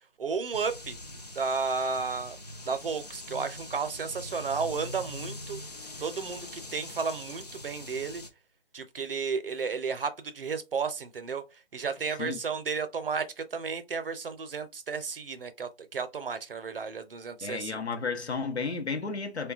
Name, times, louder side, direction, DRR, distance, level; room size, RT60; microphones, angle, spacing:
voice 1, 0.2-1.0 1.4-2.4 2.7-5.6 6.0-8.2 8.7-11.4 11.7-17.8, right 5 dB, 60° right, 0.6 m, -33 dB
sound 1, 0.5-8.3, left 1 dB, 40° left, 0.4 m, -43 dB
voice 2, 17.4-19.5, left 4 dB, 90° left, 0.8 m, -33 dB
3.6 x 2.2 x 2.4 m
figure-of-eight pair, 160°, 32 cm